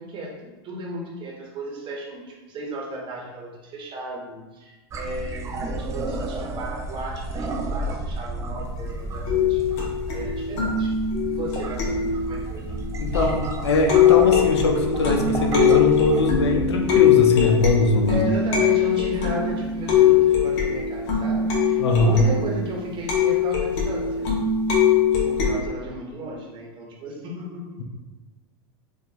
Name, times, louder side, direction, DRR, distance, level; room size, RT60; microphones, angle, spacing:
voice 1, 0.0-9.6 10.1-11.0 11.3-12.7 18.1-24.3 25.2-27.8, right 1 dB, 40° right, -1 dB, 1.0 m, -34 dB
sound 1, 4.9-16.7, right 2 dB, 20° right, 0.3 m, -32 dB
sound 2, 9.3-13.5 13.9-25.5, left 8 dB, 55° left, 1.1 m, -21 dB
voice 2, 13.0-18.2 21.8-22.2, left 2 dB, 90° left, 3 dB, 0.5 m, -21 dB
4.3 x 2.5 x 2.8 m, 1.2 s
hypercardioid pair, 105°, 14 cm